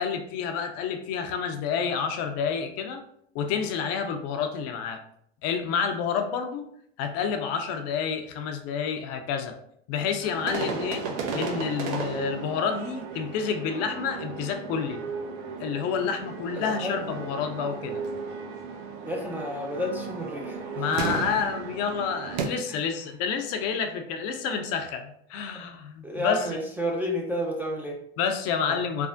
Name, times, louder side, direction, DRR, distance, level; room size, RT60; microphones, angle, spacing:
voice 1, 0.0-3.0 3.3-5.0 5.4-6.6 7.0-9.5 9.9-11.0 11.3-15.0 15.6-18.0 20.8-26.6 28.2-29.1, left 6 dB, 50° left, 6 dB, 0.5 m, -29 dB
sound 1, 10.2-22.4, right 5 dB, 70° right, 0.6 m, -34 dB
voice 2, 16.6-17.2 19.0-21.2 22.7-22.8 24.5-24.6 26.0-28.0 28.7-28.8, equal, 5° right, -2 dB, 0.4 m, -31 dB
3.3 x 2.0 x 2.5 m, 0.68 s
hypercardioid pair, 95°, 31 cm